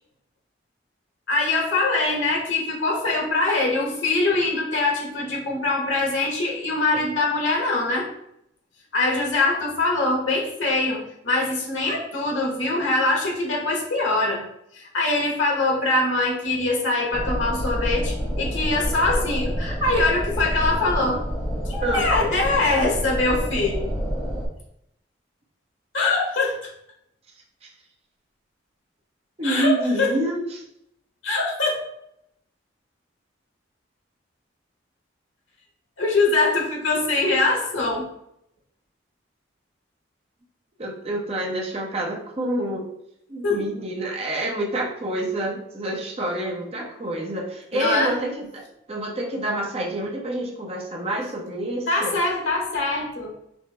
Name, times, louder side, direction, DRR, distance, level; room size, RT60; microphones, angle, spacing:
voice 1, 1.3-8.1 8.9-14.4 14.7-21.2 21.6-23.9 25.9-26.7 29.4-30.2 31.2-31.8 36.0-38.1 43.4-43.7 47.7-48.2 51.9-53.3, left 2 dB, 85° left, 0 dB, 1.1 m, -23 dB
sound 1, 17.1-24.5, equal, 20° left, 0.8 m, -28 dB
voice 2, 29.4-30.6 40.8-42.9 43.3-52.1, right 1 dB, 35° right, -1 dB, 0.8 m, -27 dB
6.0 x 2.0 x 3.3 m, 0.76 s
head